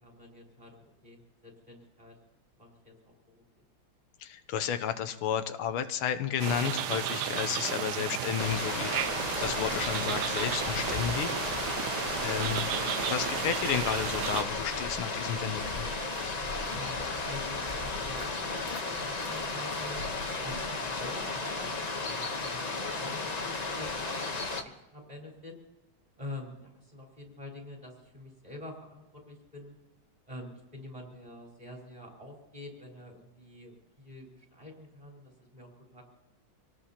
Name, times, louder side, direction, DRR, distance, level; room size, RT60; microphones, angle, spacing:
voice 1, 0.0-2.1 2.6-2.9 3.3-3.4 16.7-20.0 20.4-24.5 24.9-25.5 26.2-29.7 30.3-36.0, left 1 dB, 15° right, -2 dB, 4.3 m, -46 dB
voice 2, 4.2-9.0 9.4-11.7 12.2-12.7 13.1-15.9, left 9 dB, 85° left, 9 dB, 1.6 m, -32 dB
sound 1, 6.4-14.4, right 9 dB, 65° right, 1.1 m, -33 dB
sound 2, 8.4-24.6, left 3 dB, 35° left, 0.6 m, -34 dB
Walk footsteps, 12.6-21.3, left 4 dB, 65° left, 2.2 m, -50 dB
26.5 x 18.5 x 2.9 m, 1.0 s
omnidirectional pair, 2.3 m